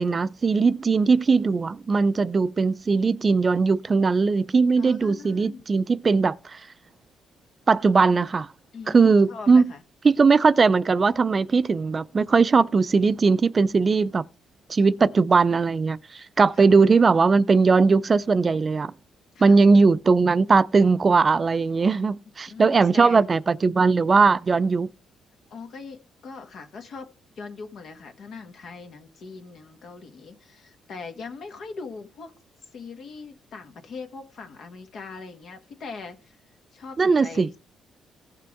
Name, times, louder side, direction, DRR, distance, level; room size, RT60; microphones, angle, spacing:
voice 1, 0.0-6.6 7.7-8.5 8.9-9.7 10.0-14.2 14.7-18.9 19.4-24.9 37.0-37.5, right 4 dB, 35° right, 0.4 m, -19 dB
voice 2, 4.8-5.6 8.7-9.8 15.1-15.3 16.6-16.7 19.3-19.6 22.5-23.2 25.5-27.1 27.4-32.3 32.7-36.4 36.7-37.6, left 4 dB, 65° left, 1.4 m, -40 dB
16.0 x 5.9 x 3.5 m
cardioid pair, 90°, 0 cm